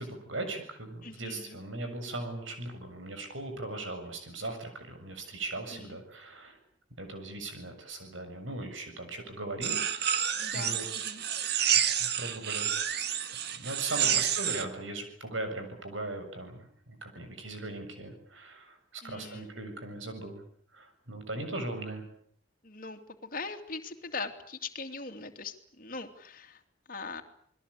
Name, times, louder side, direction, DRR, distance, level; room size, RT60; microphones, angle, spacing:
voice 1, 0.0-6.6 7.0-10.2 10.5-11.1 12.0-12.7 13.6-20.4 20.7-22.0, right 2 dB, 80° right, 7 dB, 7.3 m, -39 dB
voice 2, 1.0-1.6 5.7-6.0 10.4-11.2 14.0-14.2 19.0-19.5 22.6-26.6 26.9-27.2, left 4 dB, 45° left, 5 dB, 2.8 m, -41 dB
sound 1, 9.6-14.6, right 9 dB, 55° right, 2.0 m, -29 dB
28.5 x 21.0 x 8.5 m, 0.62 s
head